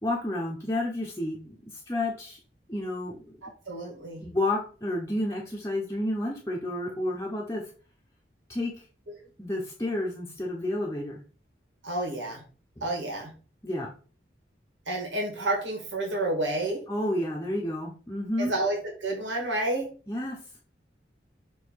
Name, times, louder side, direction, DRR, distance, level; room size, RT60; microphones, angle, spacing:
voice 1, 0.0-2.4 2.7-3.2 4.2-7.6 8.5-8.8 9.4-11.2 12.8-12.9 13.6-13.9 16.9-18.5 20.1-20.4, left 1 dB, 15° left, -3 dB, 1.0 m, -30 dB
voice 2, 3.4-4.3 11.8-12.4 12.8-13.3 14.9-16.8 18.4-19.9, right 2 dB, 90° right, 1 dB, 2.0 m, -30 dB
6.7 x 3.1 x 4.7 m, 0.38 s
head